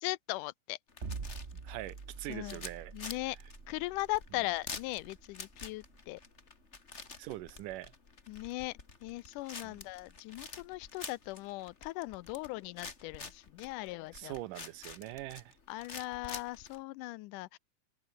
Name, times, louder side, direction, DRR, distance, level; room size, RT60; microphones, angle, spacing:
voice 1, 0.0-0.8 2.3-2.6 2.9-3.4 3.7-6.2 8.3-14.4 15.7-17.6, left 20 dB, 90° left, 2.1 m, -39 dB
sound 1, 0.9-16.8, left 4 dB, 25° left, 2.0 m, -49 dB
sound 2, 1.0-7.2, right 4 dB, 30° right, 1.5 m, -46 dB
voice 2, 1.5-2.9 7.2-7.9 9.6-9.8 14.1-15.6, right 16 dB, 90° right, 2.5 m, -43 dB
omnidirectional pair, 3.6 m